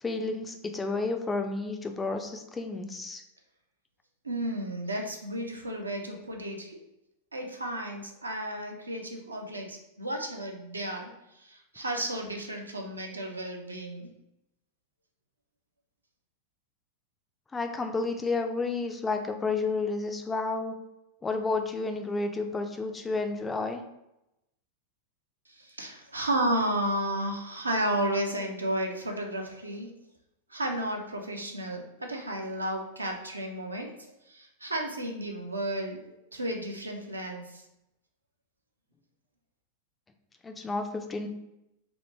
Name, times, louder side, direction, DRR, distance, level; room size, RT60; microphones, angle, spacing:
voice 1, 0.0-3.2 17.5-20.8 21.2-23.8 40.4-41.3, left 3 dB, 15° left, 5 dB, 0.3 m, -31 dB
voice 2, 4.2-6.8 7.3-11.1 11.4-14.1 25.8-29.9 30.5-33.9 34.3-37.4, right 1 dB, 80° right, 2 dB, 0.4 m, -32 dB
3.0 x 2.1 x 3.2 m, 0.88 s
figure-of-eight pair, 90°, 0 cm